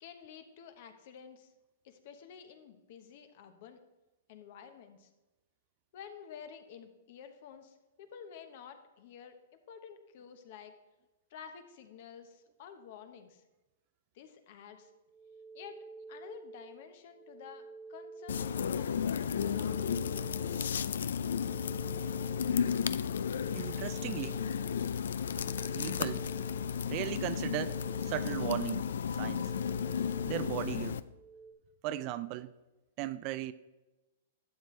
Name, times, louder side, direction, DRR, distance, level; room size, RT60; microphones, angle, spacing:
voice 1, 0.0-1.5 1.8-3.8 4.3-5.1 5.9-9.4 9.7-10.7 11.3-13.4 14.1-14.9 15.5-17.6 17.9-20.4, left 7 dB, 50° left, 1.1 m, -51 dB
sound 1, 14.8-31.5, right 3 dB, 5° left, 1.2 m, -50 dB
sound 2, 18.3-31.0, left 7 dB, 85° left, 0.4 m, -33 dB
voice 2, 23.5-24.4 25.8-26.3 26.9-28.9 29.1-29.5 30.3-31.0 31.8-32.5 33.0-33.5, right 14 dB, 35° right, 0.3 m, -37 dB
11.5 x 7.6 x 3.2 m
hypercardioid pair, 150°, 0 cm